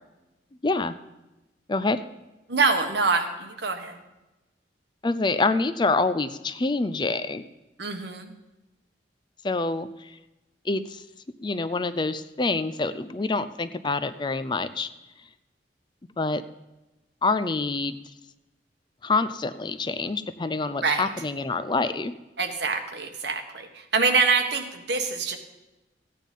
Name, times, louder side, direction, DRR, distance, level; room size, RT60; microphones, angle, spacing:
voice 1, 0.6-0.9 1.7-2.0 5.0-7.5 9.4-10.2 10.7-11.0 11.4-14.9 16.2-16.4 17.2-18.0 19.0-22.1, left 3 dB, 25° left, 13 dB, 0.4 m, -26 dB
voice 2, 2.5-4.0 7.8-8.3 20.8-21.1 22.4-25.4, right 4 dB, 65° right, 5 dB, 1.4 m, -25 dB
14.5 x 9.3 x 5.4 m, 1.0 s
head